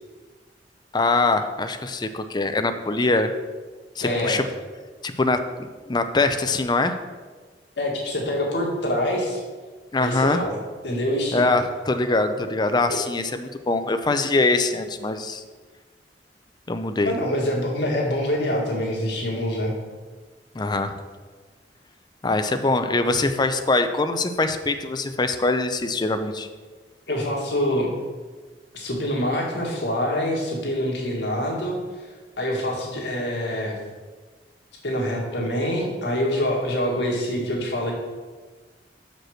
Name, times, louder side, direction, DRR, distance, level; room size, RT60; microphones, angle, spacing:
voice 1, 0.9-3.3 4.0-4.4 5.0-7.0 9.9-10.4 11.3-15.4 16.7-17.1 20.5-21.0 22.2-26.5, left 3 dB, 25° left, 8 dB, 0.5 m, -23 dB
voice 2, 4.0-4.4 7.8-9.4 10.0-10.6 10.8-11.4 12.9-13.0 17.1-19.8 27.1-27.9 28.7-31.8 32.4-33.8 34.8-37.9, left 1 dB, 85° left, -2 dB, 1.8 m, -25 dB
5.9 x 5.2 x 6.4 m, 1.4 s
head